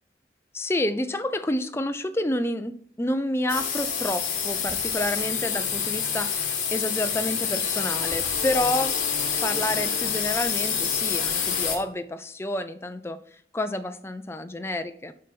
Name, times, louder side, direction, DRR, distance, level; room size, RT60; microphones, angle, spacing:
voice 1, 0.5-9.0 9.4-15.1, left 1 dB, 15° left, 10 dB, 0.4 m, -29 dB
sound 1, 3.5-11.8, left 7 dB, 45° left, 1.6 m, -27 dB
6.3 x 5.8 x 5.3 m, 0.62 s
head